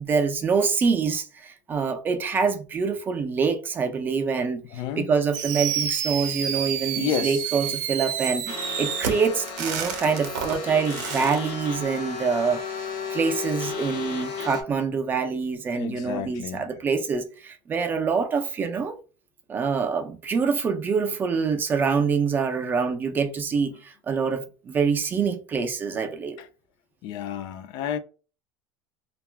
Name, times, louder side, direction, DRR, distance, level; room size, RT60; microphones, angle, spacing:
voice 1, 0.0-4.6 5.0-12.6 13.1-19.0 19.5-26.4, right 5 dB, 20° right, 0.4 m, -25 dB
voice 2, 4.7-5.1 6.9-7.4 15.7-16.7 25.9-26.0 26.4-26.5 27.0-28.0, left 9 dB, 45° left, 0.4 m, -31 dB
Fireworks, 5.3-11.4, right 8 dB, 70° right, 0.6 m, -29 dB
sound 1, 8.5-14.6, left 5 dB, 65° left, 0.9 m, -34 dB
2.3 x 2.0 x 3.3 m
supercardioid pair, 155°, 10 cm